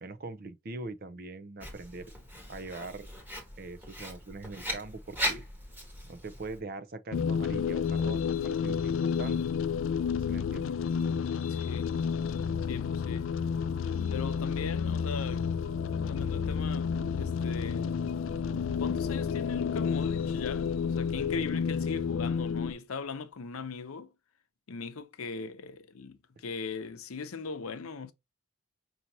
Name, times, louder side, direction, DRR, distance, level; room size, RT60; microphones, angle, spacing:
voice 1, 0.0-2.1 2.5-3.1 3.6-5.5 6.0-9.4 10.1-10.8, right 3 dB, 45° right, 0.5 m, -42 dB
Writing, 1.6-6.6, equal, 10° right, 1.2 m, -38 dB
sound 1, 7.1-22.7, left 6 dB, 65° left, 0.3 m, -30 dB
voice 2, 11.5-11.9 12.7-13.3 14.1-15.5 16.1-18.0 18.8-24.1 24.7-28.1, left 5 dB, 90° left, 0.7 m, -39 dB
sound 2, 21.0-22.1, equal, 70° right, 1.2 m, -48 dB
5.7 x 2.8 x 2.7 m
head